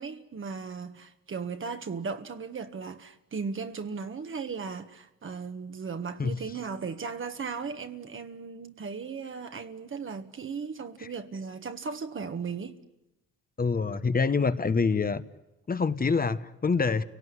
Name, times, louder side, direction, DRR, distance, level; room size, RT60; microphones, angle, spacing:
voice 1, 0.0-12.8, right 5 dB, 45° right, 1.7 m, -36 dB
voice 2, 13.6-15.2 15.7-17.0, left 4 dB, 30° left, 1.2 m, -26 dB
29.5 x 18.0 x 9.8 m
cardioid pair, 90°, 30 cm